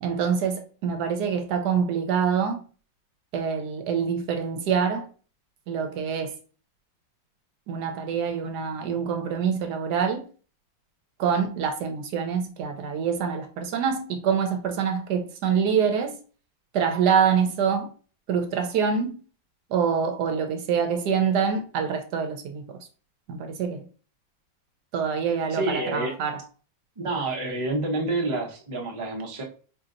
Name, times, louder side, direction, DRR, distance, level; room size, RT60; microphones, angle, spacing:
voice 1, 0.0-2.6 3.3-5.1 5.7-6.4 7.7-10.2 11.2-16.1 16.7-17.9 18.3-19.2 19.7-22.8 23.3-23.9 24.9-26.4, right 6 dB, 70° right, 1.1 m, -25 dB
voice 2, 25.5-26.2 27.0-29.4, right 2 dB, 40° right, 0.4 m, -28 dB
4.3 x 2.7 x 2.5 m
omnidirectional pair, 2.0 m